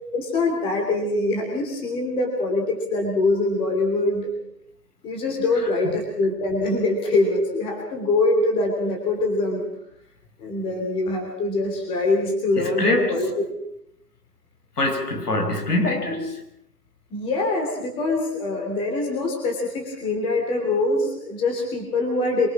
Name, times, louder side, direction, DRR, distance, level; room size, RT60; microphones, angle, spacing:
voice 1, 0.1-4.3 5.0-9.7 10.4-13.4 17.1-22.5, left 2 dB, 10° left, 3.1 m, -24 dB
voice 2, 12.6-13.3 14.8-16.4, left 2 dB, 70° left, 5.3 m, -24 dB
25.0 x 21.5 x 6.1 m
hypercardioid pair, 160°, 48 cm